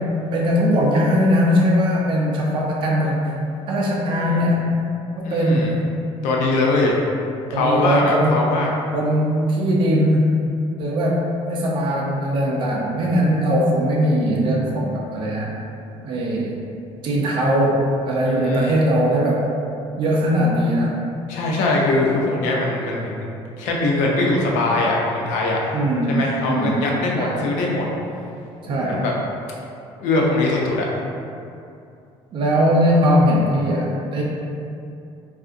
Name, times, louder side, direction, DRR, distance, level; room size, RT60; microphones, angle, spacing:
voice 1, 0.0-3.2 3.7-4.7 5.2-5.8 7.5-8.4 8.9-10.3 10.8-15.5 16.0-16.6 17.0-19.4 20.0-21.0 25.7-26.2 26.4-26.8 27.2-27.4 28.7-29.0 32.3-34.2, equal, 45° right, -4 dB, 0.5 m, -20 dB
voice 2, 4.1-4.4 5.2-5.7 6.2-7.0 7.5-8.7 18.3-18.8 21.3-23.3 23.6-25.8 26.1-27.9 28.6-29.1 30.0-30.9, left 2 dB, 85° left, -2 dB, 0.6 m, -21 dB
3.5 x 2.4 x 2.5 m, 2.6 s
cardioid pair, 120°, 12 cm